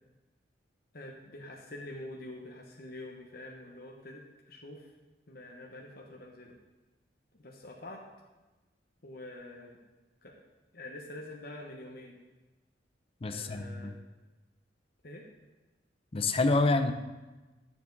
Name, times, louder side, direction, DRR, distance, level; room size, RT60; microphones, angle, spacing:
voice 1, 0.9-4.9 5.3-6.6 7.3-8.0 9.0-9.8 10.2-10.3 10.7-12.2 13.3-13.9 15.0-15.3, left 1 dB, 55° left, -1 dB, 1.0 m, -46 dB
voice 2, 13.2-14.0 16.1-16.9, left 2 dB, 30° left, 9 dB, 0.5 m, -27 dB
11.5 x 7.2 x 3.9 m, 1.2 s
head